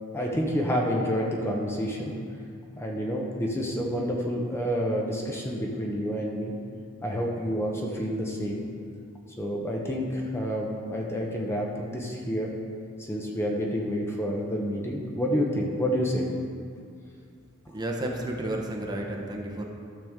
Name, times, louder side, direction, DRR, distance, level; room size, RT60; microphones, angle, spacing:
voice 1, 0.1-2.1 2.8-6.5 7.0-8.6 9.4-12.5 13.0-16.3, equal, 10° left, -2 dB, 0.7 m, -29 dB
voice 2, 17.7-19.6, right 1 dB, 20° right, 0 dB, 0.9 m, -31 dB
12.0 x 6.9 x 3.6 m, 2.3 s
head